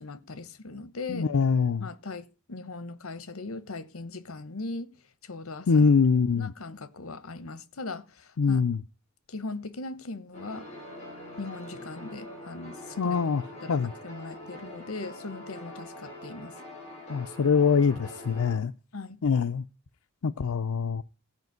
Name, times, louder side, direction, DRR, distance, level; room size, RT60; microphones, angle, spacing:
voice 1, 0.0-1.3 1.8-4.9 5.2-5.9 6.4-8.6 9.3-10.7 11.4-13.2 13.6-13.8 14.0-16.5 18.9-19.2, left 3 dB, 75° left, 1.1 m, -39 dB
voice 2, 1.1-1.9 5.7-6.5 8.4-8.8 13.0-13.4 13.7-13.9 17.1-18.7 19.2-19.6 20.2-21.0, left 5 dB, 90° left, 0.5 m, -23 dB
sound 1, 10.3-18.6, left 1 dB, 30° left, 4.5 m, -44 dB
15.0 x 5.2 x 9.3 m
head